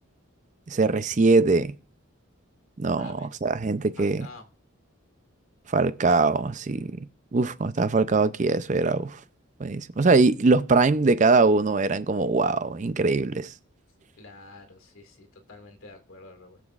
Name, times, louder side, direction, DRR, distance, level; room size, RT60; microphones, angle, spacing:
voice 1, 0.7-1.7 2.8-4.3 5.7-7.0 7.3-9.2 9.6-13.5, right 3 dB, 35° right, 0.5 m, -22 dB
voice 2, 3.0-3.3 4.0-4.4 14.2-16.6, left 2 dB, 85° left, 2.1 m, -47 dB
20.5 x 7.2 x 2.4 m
head